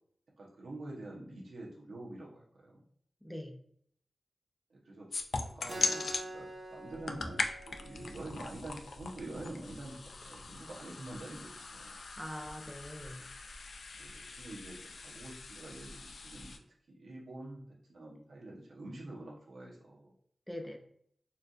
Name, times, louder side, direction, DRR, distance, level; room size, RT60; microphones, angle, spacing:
voice 1, 0.4-2.8 4.7-6.1 6.3-12.0 14.0-16.6 16.9-20.1, right 2 dB, 90° right, -3 dB, 0.9 m, -47 dB
voice 2, 3.2-3.6 12.2-13.3 20.5-20.8, equal, 5° left, 3 dB, 0.5 m, -43 dB
sound 1, 5.1-6.2 6.9-16.6, left 3 dB, 85° left, 0.3 m, -40 dB
Keyboard (musical), 5.7-10.8, right 1 dB, 50° right, 0.9 m, -48 dB
4.3 x 2.6 x 2.4 m, 0.65 s
wide cardioid pair, 100°, 0 cm